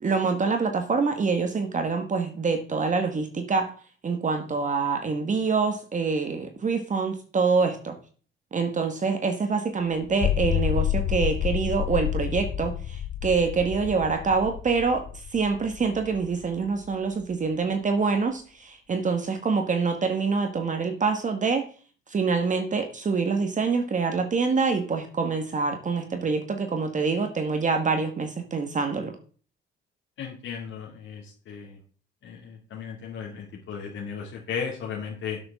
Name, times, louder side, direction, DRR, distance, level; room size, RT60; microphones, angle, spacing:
voice 1, 0.0-3.7 4.0-8.0 8.5-15.0 15.3-21.6 22.1-29.1, right 4 dB, 40° right, 6 dB, 1.5 m, -26 dB
sound 1, 10.0-16.5, left 11 dB, 55° left, 0.7 m, -29 dB
voice 2, 30.2-31.8 32.2-35.4, left 6 dB, 75° left, -2 dB, 2.6 m, -35 dB
11.0 x 8.5 x 3.7 m, 0.42 s
cardioid pair, 90°, 20 cm